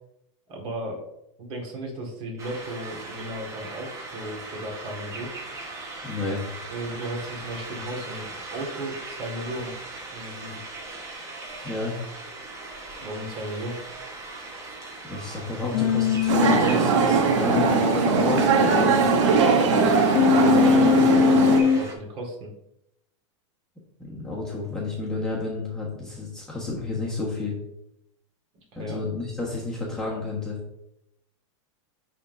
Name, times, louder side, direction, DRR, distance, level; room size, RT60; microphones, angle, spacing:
voice 1, 0.5-1.0 1.4-5.3 6.7-9.7 10.1-10.6 13.0-13.8 19.6-22.5 28.7-29.0, right 1 dB, 35° right, 0 dB, 1.9 m, -35 dB
sound 1, 2.4-22.0, right 2 dB, 20° right, 1.1 m, -39 dB
voice 2, 6.0-6.5 10.9-11.0 11.6-11.9 15.0-19.2 24.0-27.5 28.7-30.6, left 3 dB, 5° left, -6 dB, 1.4 m, -31 dB
Human voice, 15.7-16.6 17.6-19.4 20.2-21.8, left 6 dB, 55° left, 1.0 m, -21 dB
sound 2, 16.3-21.6, right 5 dB, 70° right, 1.1 m, -20 dB
10.5 x 3.7 x 2.7 m, 0.80 s
supercardioid pair, 150°, 16 cm